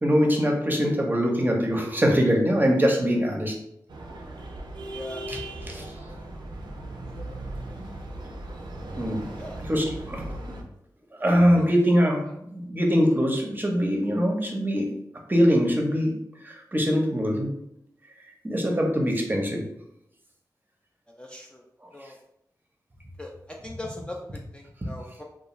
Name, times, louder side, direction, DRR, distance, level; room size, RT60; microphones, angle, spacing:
voice 1, 0.0-3.5 5.3-5.4 5.7-5.9 9.0-9.3 9.7-10.3 11.2-12.2 12.5-14.9 15.3-16.1 16.4-17.5 18.4-19.6, equal, 25° right, 1 dB, 0.6 m, -22 dB
sound 1, 3.9-10.6, right 1 dB, 85° right, 0.4 m, -37 dB
voice 2, 4.9-5.3 5.6-6.0 9.4-9.6 11.6-11.7 12.3-12.4 21.2-21.6 21.9-22.2 23.2-25.2, left 1 dB, 15° left, 0 dB, 0.3 m, -41 dB
2.3 x 2.3 x 3.0 m, 0.76 s
cardioid pair, 55°, 7 cm